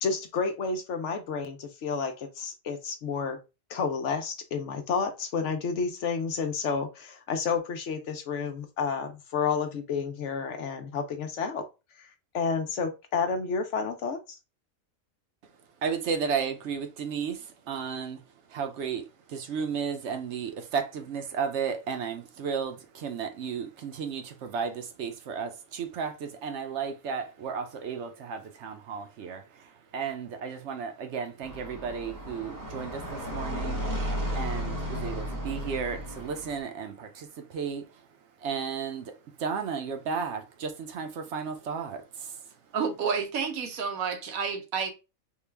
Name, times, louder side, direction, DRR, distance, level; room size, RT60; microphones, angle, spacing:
voice 1, 0.0-3.4 3.7-11.6 12.0-12.1 12.3-14.4, left 5 dB, 65° left, 0.9 m, -30 dB
voice 2, 15.8-38.1 38.4-42.6, right 6 dB, 65° right, 0.8 m, -34 dB
sound 1, 31.4-36.6, equal, 20° right, 0.5 m, -34 dB
voice 3, 42.7-44.9, right 6 dB, 90° right, 1.2 m, -30 dB
3.7 x 2.3 x 3.2 m
omnidirectional pair, 1.4 m